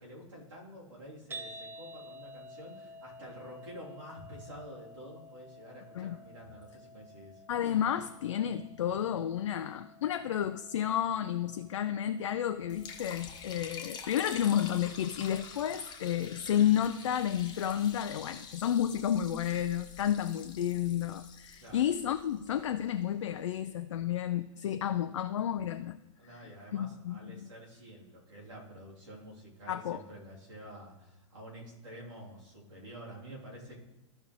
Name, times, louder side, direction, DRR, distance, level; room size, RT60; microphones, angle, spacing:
voice 1, 0.0-7.4 21.6-21.9 26.2-33.8, equal, 70° right, -4 dB, 3.3 m, -49 dB
sound 1, 1.3-17.5, equal, 15° right, 1.0 m, -53 dB
voice 2, 7.5-26.0 26.3-27.5 29.7-30.0, left 10 dB, 65° left, 8 dB, 0.4 m, -31 dB
Liquid, 12.7-22.9, left 5 dB, 25° left, 1.3 m, -47 dB
14.5 x 5.4 x 3.2 m, 0.98 s
figure-of-eight pair, 95°, 17 cm